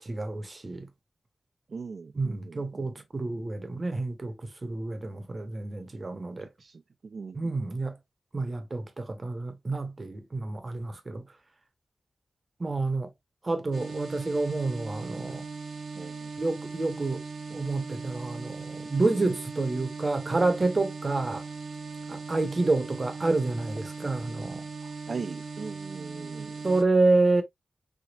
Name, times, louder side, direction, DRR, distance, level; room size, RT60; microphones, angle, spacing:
voice 1, 0.0-0.9 2.1-6.5 7.3-8.0 8.3-11.3 12.6-13.1 13.4-15.5 16.4-21.4 22.1-24.7 26.6-27.4, right 3 dB, 30° right, 0.8 m, -28 dB
voice 2, 1.7-2.9 3.3-3.5 6.1-7.5 16.0-16.3 24.8-26.6, right 4 dB, 55° right, 0.3 m, -41 dB
sound 1, 13.7-26.8, right 4 dB, 80° right, 0.7 m, -39 dB
3.5 x 3.4 x 2.3 m
wide cardioid pair, 150°, 0 cm